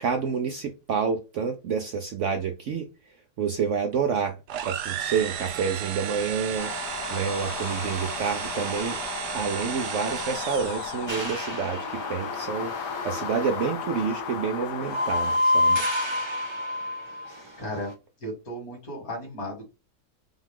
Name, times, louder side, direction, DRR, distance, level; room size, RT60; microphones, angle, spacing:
voice 1, 0.0-2.9 3.4-4.4 4.6-6.7 7.1-9.0 9.3-15.8, right 6 dB, 65° right, 0.8 m, -28 dB
sound 1, 4.5-11.2, right 9 dB, 85° right, 1.2 m, -34 dB
sound 2, 6.6-15.4, left 8 dB, 85° left, 1.3 m, -35 dB
sound 3, 11.1-17.4 17.7-17.9, left 1 dB, 20° right, 0.8 m, -29 dB
voice 2, 17.1-17.9 18.2-19.7, equal, 60° left, 2.6 m, -36 dB
5.5 x 2.4 x 3.6 m
omnidirectional pair, 1.7 m